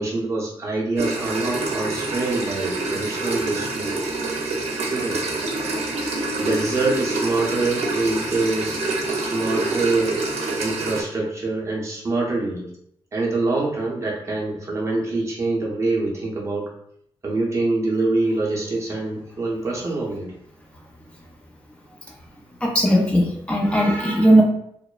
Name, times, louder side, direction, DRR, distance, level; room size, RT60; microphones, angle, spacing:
voice 1, 0.0-4.0 4.2-4.3 4.8-5.3 6.4-10.3 10.6-12.7 13.1-16.7 17.2-20.3, right 2 dB, 30° right, -3 dB, 0.6 m, -25 dB
sound 1, 1.0-11.0, right 2 dB, 85° right, 0.5 m, -26 dB
voice 2, 22.6-24.4, right 1 dB, 10° left, -2 dB, 0.3 m, -18 dB
2.8 x 2.0 x 2.3 m, 0.68 s
wide cardioid pair, 165°, 10 cm